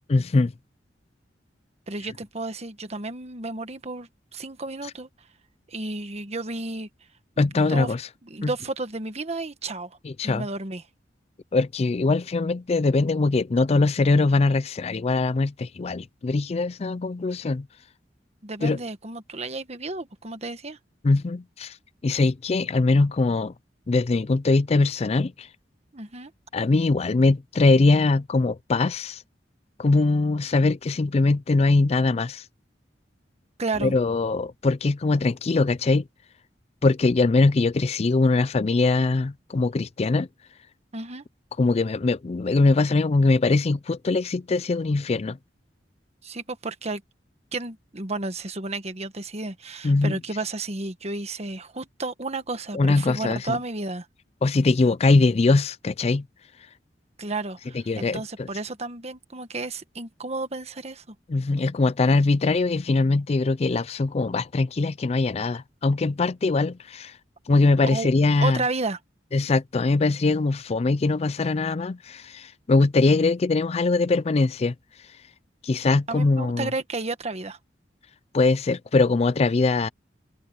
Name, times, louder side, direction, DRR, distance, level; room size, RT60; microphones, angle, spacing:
voice 1, 0.1-0.5 7.4-8.1 8.4-8.5 10.0-10.5 11.5-17.7 18.6-18.8 21.0-21.8 22.0-23.5 23.9-25.5 26.5-29.2 29.8-32.4 33.8-36.0 36.8-40.3 41.6-45.4 49.8-50.2 52.7-53.6 54.4-56.3 57.9-58.5 61.3-67.2 67.5-68.6 69.3-74.7 75.6-76.7 78.3-79.9, left 3 dB, 35° left, 0.4 m, -22 dB
voice 2, 1.9-5.1 5.7-6.9 7.5-7.9 8.3-10.0 10.2-10.8 18.4-20.8 25.9-26.3 33.6-33.9 40.9-41.2 46.2-47.0 47.5-54.1 57.2-61.1 67.9-68.1 68.4-69.0 76.1-77.6, right 3 dB, 35° right, 1.4 m, -32 dB
open air
head